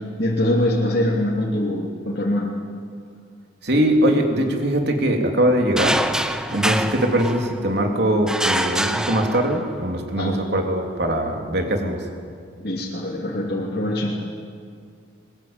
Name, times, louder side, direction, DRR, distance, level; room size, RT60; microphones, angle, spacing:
voice 1, 0.2-2.5 10.1-10.4 12.6-14.2, left 1 dB, 55° left, -4 dB, 3.0 m, -23 dB
voice 2, 3.6-6.0 6.5-12.0, right 1 dB, 55° right, 2 dB, 3.3 m, -21 dB
sound 1, 5.8-7.7 8.3-9.8, right 1 dB, 5° right, 0.8 m, -25 dB
22.5 x 21.0 x 9.0 m, 2.2 s
head